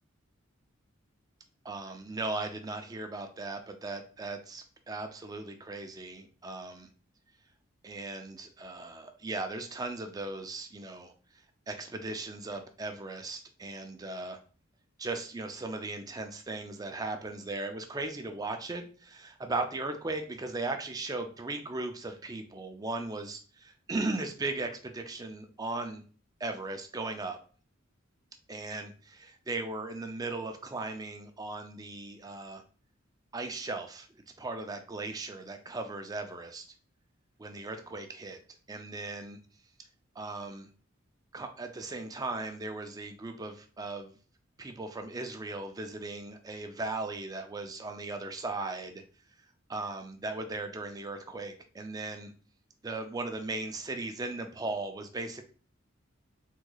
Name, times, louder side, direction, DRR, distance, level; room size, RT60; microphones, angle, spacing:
voice 1, 1.6-6.9 7.8-11.1 11.7-14.4 15.0-26.0 26.4-27.4 28.5-32.6 33.3-34.1 34.4-36.7 37.4-38.4 38.7-39.4 40.2-40.7 41.3-44.2 44.6-49.0 49.7-52.3 52.8-55.4, right 2 dB, 20° right, 6 dB, 0.4 m, -37 dB
3.5 x 3.0 x 2.3 m, 0.39 s
head